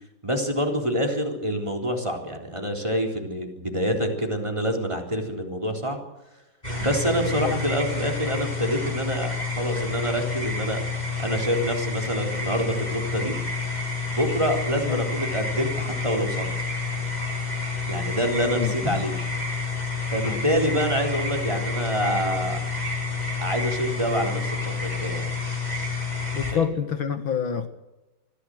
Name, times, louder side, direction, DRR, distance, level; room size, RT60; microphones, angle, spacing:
voice 1, 0.2-6.0 6.8-10.8 11.2-13.4 14.1-16.5 17.9-19.2 20.1-22.6 23.4-25.3 26.5-26.6, equal, 15° right, 2 dB, 3.9 m, -26 dB
sound 1, 6.6-26.5, left 4 dB, 20° left, 6.0 m, -29 dB
voice 2, 26.3-27.7, left 7 dB, 75° left, 9 dB, 2.5 m, -27 dB
25.0 x 16.0 x 7.9 m, 1.0 s
omnidirectional pair, 2.2 m